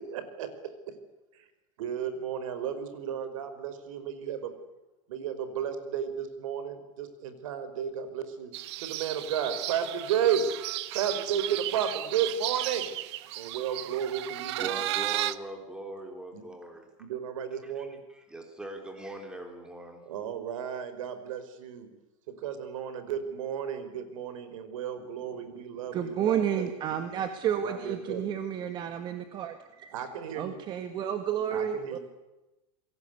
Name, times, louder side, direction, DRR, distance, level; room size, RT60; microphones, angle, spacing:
voice 1, 0.1-0.5 1.8-4.5 5.1-8.5 8.8-10.5 10.9-12.9 13.4-14.8 16.3-16.4 17.0-18.0 20.1-21.9 22.3-27.0 27.6-28.4 29.9-30.6 31.5-32.0, right 8 dB, 70° right, 10 dB, 5.2 m, -33 dB
sound 1, 8.5-15.4, right 16 dB, 50° right, 1.3 m, -34 dB
voice 2, 14.6-16.9 17.6-20.0, right 1 dB, 5° right, 4 dB, 3.6 m, -41 dB
voice 3, 25.9-29.9 30.4-32.0, right 9 dB, 25° right, 8 dB, 1.7 m, -31 dB
28.5 x 22.0 x 8.2 m, 1.0 s
supercardioid pair, 170°, 18 cm